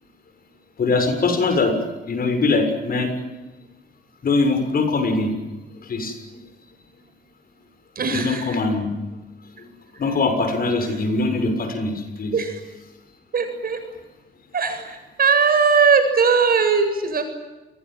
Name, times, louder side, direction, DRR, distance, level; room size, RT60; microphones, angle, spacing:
voice 1, 0.8-1.7 2.1-3.1 4.2-5.3 5.9-6.2 8.1-8.9 10.0-12.3, left 3 dB, 50° left, 8 dB, 6.8 m, -22 dB
voice 2, 7.9-8.6 9.6-9.7 9.9-10.0 10.8-11.0 12.3-12.6 13.3-13.8 14.5-17.2, right 5 dB, 50° right, 7 dB, 7.8 m, -20 dB
28.0 x 22.0 x 9.4 m, 1.1 s
cardioid pair, 90°, 20 cm